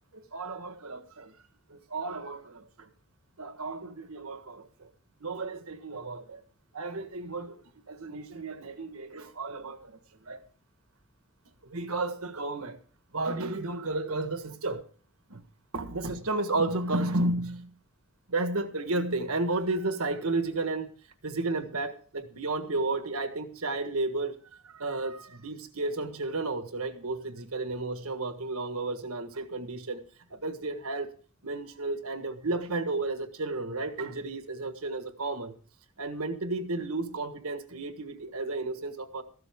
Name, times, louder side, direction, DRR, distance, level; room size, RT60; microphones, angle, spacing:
voice 1, 0.1-1.3 1.7-2.9 3.4-4.9 5.2-6.4 6.7-10.0 10.2-10.4 11.6-12.8 13.1-14.9 15.3-15.4 15.7-17.7 18.3-20.9 21.2-30.0 30.3-31.1 31.4-35.5 36.0-39.2, right 2 dB, 70° right, 1.5 m, -33 dB
14.5 x 12.5 x 3.6 m
head